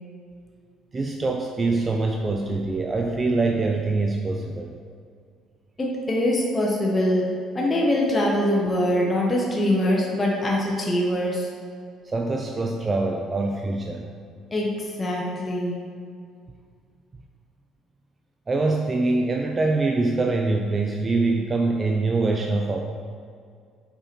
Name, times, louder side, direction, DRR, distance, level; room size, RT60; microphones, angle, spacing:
voice 1, 0.9-4.7 11.9-14.0 18.5-22.8, right 3 dB, 25° right, 2 dB, 0.4 m, -24 dB
voice 2, 5.8-11.5 14.5-15.8, left 1 dB, 20° left, -2 dB, 0.8 m, -23 dB
5.5 x 4.2 x 4.3 m, 2.2 s
cardioid pair, 125°, 0 cm